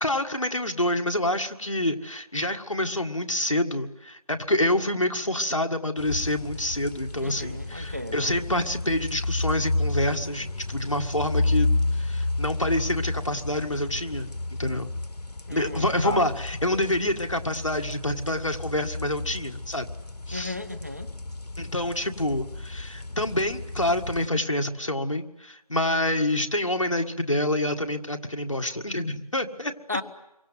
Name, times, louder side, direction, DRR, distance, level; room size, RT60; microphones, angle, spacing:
voice 1, 0.0-14.3 14.6-14.9 15.5-19.9 20.3-20.5 21.6-29.7, left 1 dB, 50° left, 4 dB, 1.8 m, -27 dB
sound 1, 6.0-24.3, left 2 dB, 80° left, 0.9 m, -31 dB
voice 2, 7.2-8.4 15.5-16.3 20.3-21.1 29.9-30.0, left 2 dB, 25° right, 10 dB, 1.0 m, -34 dB
28.0 x 24.0 x 7.8 m, 0.89 s
figure-of-eight pair, 180°, 20 cm